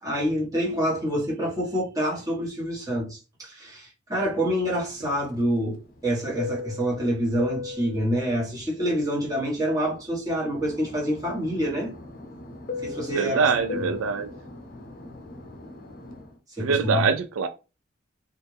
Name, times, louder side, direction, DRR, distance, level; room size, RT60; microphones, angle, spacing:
voice 1, 0.0-5.8 6.0-11.9 12.8-13.4 13.7-13.9 16.5-17.1, equal, 20° right, 1.5 m, -27 dB
Fixed-wing aircraft airplane, 4.8-10.1 10.5-16.3, left 4 dB, 45° left, 0.6 m, -38 dB
voice 2, 13.1-14.3 16.6-17.5, right 5 dB, 90° right, 0.4 m, -24 dB
4.2 x 2.5 x 3.3 m
head